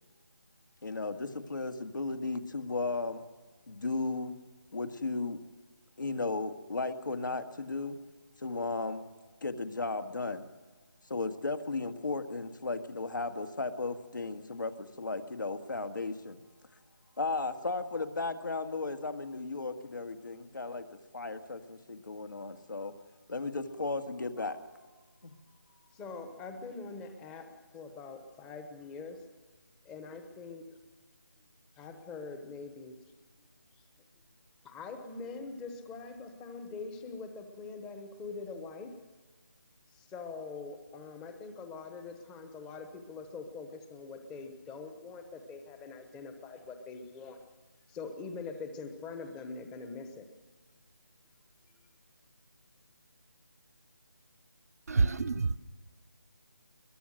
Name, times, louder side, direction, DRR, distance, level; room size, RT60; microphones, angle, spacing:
voice 1, 0.8-3.2 3.7-4.3 4.7-5.4 6.0-8.0 8.4-9.0 9.4-10.5 11.1-16.4 17.2-20.9 21.1-22.9 23.3-24.6 25.2-25.3, left 3 dB, 70° left, 7 dB, 1.9 m, -35 dB
voice 2, 25.9-27.5 27.7-29.2 29.8-30.6 31.8-33.0 33.8-33.9 34.6-38.9 39.9-47.4 47.9-50.3, left 4 dB, 5° left, 7 dB, 0.9 m, -43 dB
voice 3, 54.9-55.6, right 4 dB, 50° right, 13 dB, 0.8 m, -27 dB
22.5 x 21.0 x 6.5 m, 1.4 s
figure-of-eight pair, 165°, 11 cm